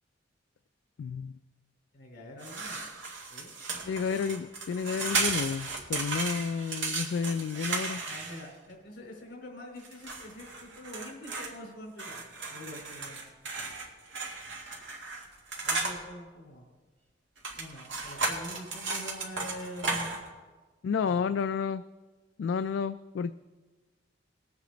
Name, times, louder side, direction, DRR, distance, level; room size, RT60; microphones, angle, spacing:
voice 1, 1.0-1.3 3.9-8.0 20.8-21.8 22.4-23.4, left 6 dB, 75° left, 12 dB, 0.3 m, -31 dB
voice 2, 1.9-2.8 3.3-3.5 8.1-13.3 15.6-16.6 17.6-20.1 21.0-21.3, left 1 dB, 55° left, -1 dB, 4.1 m, -45 dB
sound 1, 2.4-8.7 9.8-11.5 12.0-16.0 17.4-20.3, right 3 dB, 85° right, 2.2 m, -35 dB
20.5 x 8.2 x 3.9 m, 1.3 s
head